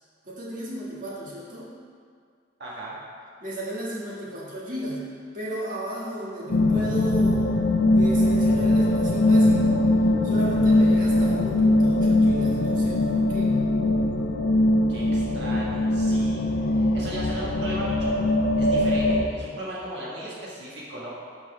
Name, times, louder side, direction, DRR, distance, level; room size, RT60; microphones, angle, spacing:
voice 1, 0.2-1.7 3.4-5.1 5.3-7.6 7.9-9.9 10.2-13.6, right 1 dB, 50° right, -6 dB, 1.9 m, -34 dB
voice 2, 2.6-3.0 14.9-16.4 16.7-18.2 18.5-21.1, right 1 dB, 75° right, -6 dB, 1.6 m, -37 dB
sound 1, 6.5-19.3, left 1 dB, 85° left, 0.6 m, -21 dB
12.0 x 4.5 x 3.4 m, 2.1 s
head